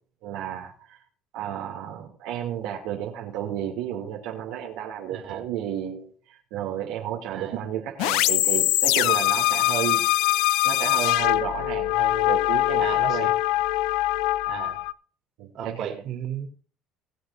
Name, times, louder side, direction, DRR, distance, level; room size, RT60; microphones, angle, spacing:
voice 1, 0.2-1.0 1.3-10.1 10.6-13.3 15.4-16.0, right 10 dB, 75° right, -1 dB, 2.9 m, -32 dB
voice 2, 5.1-5.5 7.3-7.6 12.8-13.3 14.5-14.8 15.5-16.5, right 9 dB, 60° right, 4 dB, 3.7 m, -34 dB
sound 1, 8.0-14.9, left 17 dB, 75° left, 0.5 m, -23 dB
21.5 x 8.1 x 2.7 m, 0.42 s
supercardioid pair, 80°, 0 cm